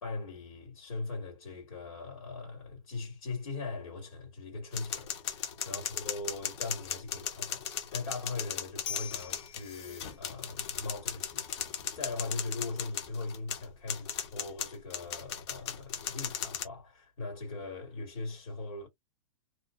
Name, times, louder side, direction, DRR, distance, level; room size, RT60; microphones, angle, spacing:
voice 1, 0.0-18.9, left 3 dB, 80° left, 1.8 m, -40 dB
sound 1, 4.7-16.6, left 8 dB, 55° left, 0.8 m, -37 dB
2.8 x 2.1 x 2.4 m
hypercardioid pair, 145°, 17 cm